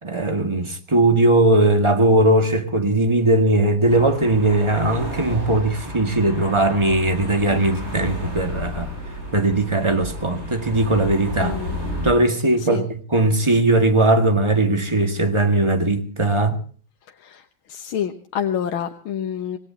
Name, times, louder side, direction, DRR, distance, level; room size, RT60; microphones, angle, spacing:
voice 1, 0.0-8.9 9.3-11.6 12.0-16.6, right 2 dB, 15° right, 1.8 m, -19 dB
sound 1, 3.9-12.1, equal, 30° right, 7.6 m, -32 dB
voice 2, 11.4-11.8 12.6-12.8 17.2-17.4 17.7-19.6, left 9 dB, 85° left, 1.9 m, -27 dB
26.5 x 18.0 x 2.9 m
omnidirectional pair, 2.2 m